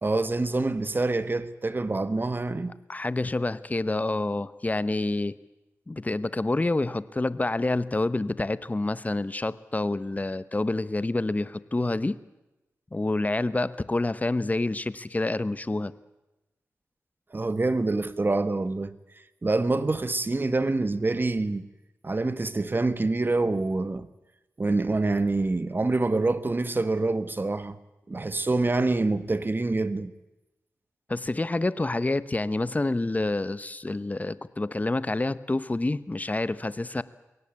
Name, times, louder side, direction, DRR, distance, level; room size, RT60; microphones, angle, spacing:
voice 1, 0.0-2.7 17.3-19.0 19.4-21.6 22.0-24.1 24.6-27.8 28.1-30.1, right 2 dB, 35° right, 1.5 m, -26 dB
voice 2, 2.9-5.3 5.9-12.2 12.9-15.9 31.1-37.0, left 2 dB, 25° left, 1.0 m, -28 dB
22.5 x 17.5 x 8.4 m
cardioid pair, 50°, 6 cm